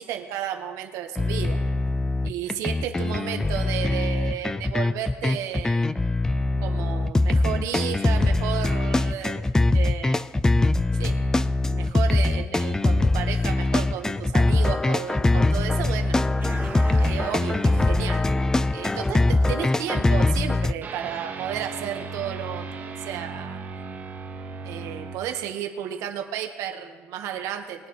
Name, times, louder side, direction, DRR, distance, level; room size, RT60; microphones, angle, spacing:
voice 1, 0.0-1.6 2.2-5.9 6.6-10.3 11.0-11.2 11.7-16.2 16.9-18.3 18.7-23.6 24.6-27.9, right 10 dB, 75° right, 4 dB, 1.5 m, -33 dB
sound 1, 1.1-20.7, left 2 dB, 10° left, 0.3 m, -22 dB
sound 2, 16.4-19.2 20.8-25.2, right 4 dB, 40° right, 1.9 m, -38 dB
23.0 x 9.4 x 3.3 m, 1.4 s
cardioid pair, 120°, 5 cm